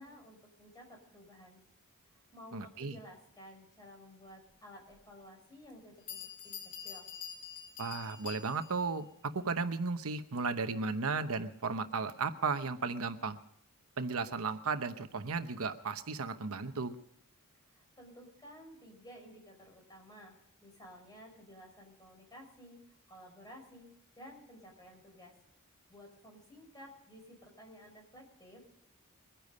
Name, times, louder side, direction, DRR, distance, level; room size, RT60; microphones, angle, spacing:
voice 1, 0.0-1.6 2.1-7.1 17.7-20.3 20.6-22.8 23.1-23.9 24.2-25.3 25.9-28.6, equal, 20° left, 1 dB, 5.9 m, -54 dB
voice 2, 2.5-3.0 7.8-13.4 14.0-17.0, right 4 dB, 70° right, 9 dB, 0.9 m, -35 dB
Bell, 4.9-5.0 5.7-5.8 6.1-8.9, left 8 dB, 85° left, 2.3 m, -46 dB
22.5 x 10.5 x 5.4 m, 0.75 s
head